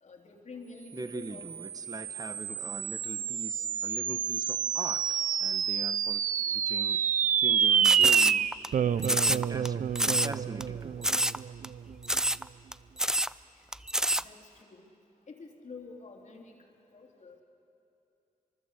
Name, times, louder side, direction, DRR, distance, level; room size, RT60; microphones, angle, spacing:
voice 1, 0.0-1.5 14.2-14.8 15.3-16.5 16.9-17.4, left 4 dB, 60° left, 1 dB, 3.3 m, -48 dB
voice 2, 0.9-7.1 7.4-9.8 10.2-11.3, right 2 dB, 25° right, 9 dB, 1.1 m, -42 dB
sound 1, 1.2-11.9, right 8 dB, 70° right, 0.5 m, -28 dB
sound 2, 7.8-8.7 9.0-9.7 9.9-10.3 10.6-10.7 11.0-11.4 11.6-11.7 12.0-12.4 12.7-12.8 13.0-13.3 13.7-14.2, right 1 dB, 5° right, 0.5 m, -27 dB
24.5 x 24.0 x 8.2 m, 2.9 s
wide cardioid pair, 100°, 14 cm